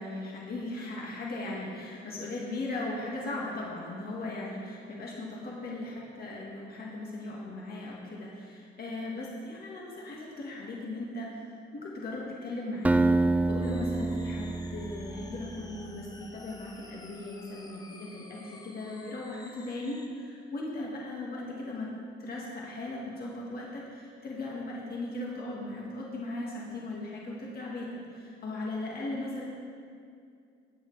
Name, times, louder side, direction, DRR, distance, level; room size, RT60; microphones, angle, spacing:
voice 1, 0.0-11.3 11.7-21.9 22.2-29.4, left 2 dB, 50° left, -4 dB, 1.9 m, -38 dB
Acoustic guitar, 12.8-15.9, right 2 dB, 5° right, 0.3 m, -27 dB
sound 1, 13.6-20.1, left 2 dB, 20° left, 0.9 m, -52 dB
18.0 x 6.7 x 3.3 m, 2.3 s
cardioid pair, 90°, 20 cm